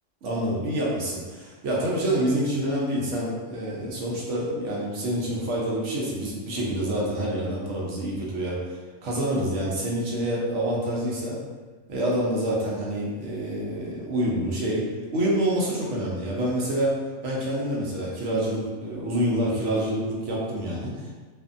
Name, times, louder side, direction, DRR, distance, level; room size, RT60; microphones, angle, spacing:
voice 1, 0.2-8.6 9.0-11.4 11.9-14.9 15.1-21.1, right 1 dB, 75° right, -4 dB, 1.0 m, -27 dB
2.6 x 2.5 x 2.4 m, 1.3 s
omnidirectional pair, 1.3 m